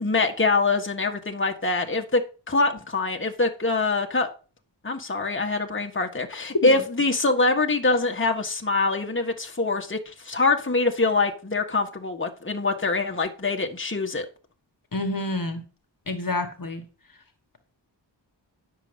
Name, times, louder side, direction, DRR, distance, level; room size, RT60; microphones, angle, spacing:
voice 1, 0.0-4.3 4.8-14.2, left 3 dB, 25° left, 3 dB, 1.6 m, -24 dB
voice 2, 14.9-15.6 16.1-16.8, left 2 dB, 50° left, 7 dB, 1.6 m, -28 dB
10.0 x 7.0 x 5.3 m, 0.35 s
wide cardioid pair, 80°, 44 cm